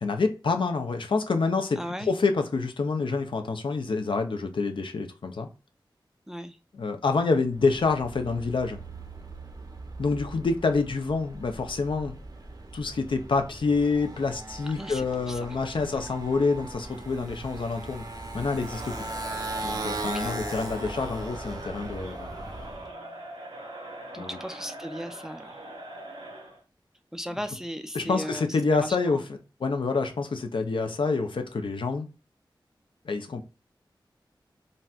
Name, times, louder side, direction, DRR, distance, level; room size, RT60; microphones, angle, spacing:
voice 1, 0.0-5.5 6.7-8.8 10.0-12.2 12.7-19.1 19.6-22.3 24.2-24.3 27.9-29.2 29.6-32.1 33.0-33.4, left 4 dB, 75° left, 0.5 m, -27 dB
voice 2, 1.8-2.1 6.3-6.6 14.8-15.5 15.9-16.0 19.0-19.1 20.0-20.3 24.1-25.6 27.1-29.2, equal, 5° right, 0.4 m, -37 dB
Motorcycle, 7.5-22.9, right 2 dB, 50° right, 0.6 m, -39 dB
Crowd, 18.5-26.6, right 1 dB, 80° right, 1.1 m, -42 dB
4.0 x 2.2 x 2.3 m
wide cardioid pair, 90°, 9 cm